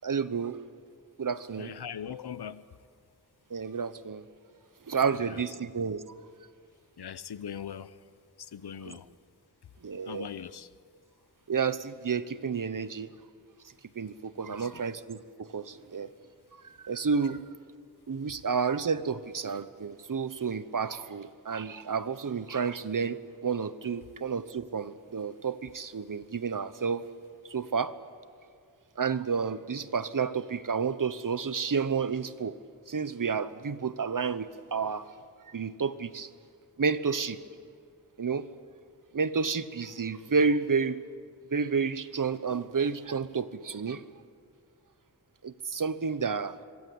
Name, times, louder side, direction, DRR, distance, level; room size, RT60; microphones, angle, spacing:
voice 1, 0.0-0.6 1.2-1.7 3.5-4.2 4.9-6.1 8.8-9.0 9.8-10.3 11.5-13.1 13.9-16.1 16.6-17.4 18.1-27.1 27.5-27.9 29.0-32.6 32.9-35.1 35.5-36.3 36.8-37.4 38.2-38.5 39.1-41.0 41.5-44.0 45.4-46.6, right 5 dB, 55° right, 1.1 m, -30 dB
voice 2, 1.6-2.6 7.0-7.9 8.4-9.1 10.1-10.7 14.4-14.7, left 8 dB, 75° left, 0.9 m, -40 dB
26.5 x 23.0 x 8.8 m
wide cardioid pair, 70°, 39 cm